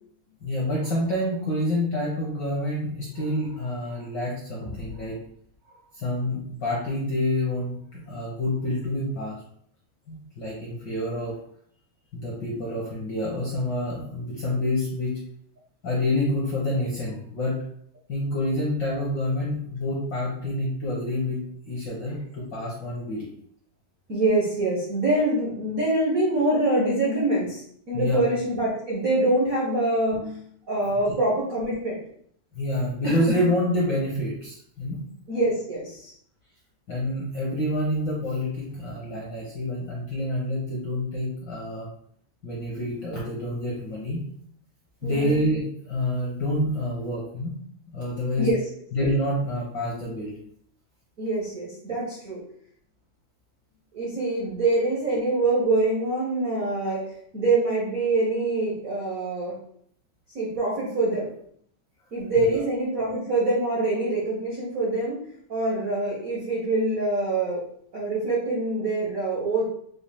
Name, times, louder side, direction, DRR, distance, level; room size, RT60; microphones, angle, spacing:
voice 1, 0.4-5.1 5.7-9.4 10.1-11.3 12.1-15.1 15.8-17.6 18.1-21.4 21.6-23.3 27.9-28.2 32.5-35.0 36.9-41.9 42.4-44.2 45.0-47.5 47.9-48.5 48.9-50.3 62.4-62.5, left 1 dB, 60° left, -5 dB, 1.1 m, -27 dB
voice 2, 24.1-30.4 30.7-32.0 35.3-36.1 45.0-45.4 48.4-48.6 51.2-52.4 53.9-59.6 60.3-61.3 62.1-65.2 65.5-67.6 67.9-69.6, right 2 dB, 80° right, -5 dB, 0.7 m, -25 dB
6.2 x 2.4 x 3.5 m, 0.65 s
omnidirectional pair, 3.4 m